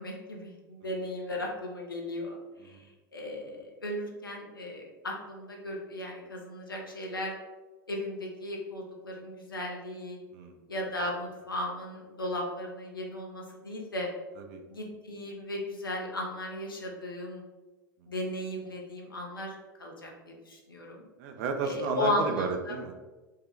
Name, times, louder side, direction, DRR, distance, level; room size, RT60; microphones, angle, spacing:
voice 1, 0.0-2.4 2.6-2.8 3.1-7.3 7.9-10.2 10.7-14.1 14.7-17.4 18.1-21.0 21.6-22.8, left 1 dB, 85° left, 0 dB, 0.8 m, -36 dB
voice 2, 21.2-23.0, right 5 dB, 50° right, 5 dB, 0.6 m, -33 dB
4.8 x 2.2 x 3.1 m, 1.2 s
figure-of-eight pair, 80°, 11 cm